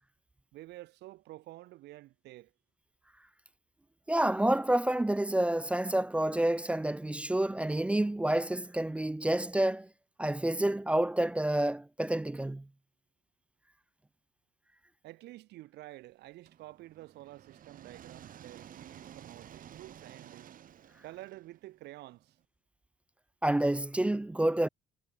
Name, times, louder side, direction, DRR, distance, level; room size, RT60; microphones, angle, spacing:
voice 1, 0.5-2.5 15.0-20.5 21.0-22.4, right 17 dB, 80° right, 5.6 m, -49 dB
voice 2, 4.1-9.9 10.2-12.7 23.4-24.7, right 1 dB, 5° right, 0.3 m, -29 dB
sound 1, 16.5-22.3, right 10 dB, 55° right, 6.2 m, -52 dB
cardioid pair, 110°, 17 cm